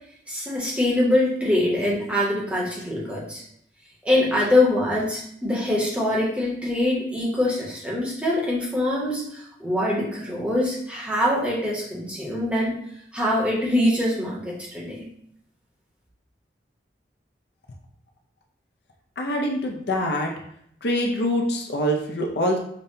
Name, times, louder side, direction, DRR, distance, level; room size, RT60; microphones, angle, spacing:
voice 1, 0.3-3.4 4.0-12.8 13.1-15.0, left 1 dB, 5° right, -5 dB, 0.8 m, -24 dB
voice 2, 19.2-20.3 20.8-22.6, equal, 65° left, 1 dB, 0.5 m, -24 dB
5.2 x 2.1 x 2.7 m, 0.69 s
head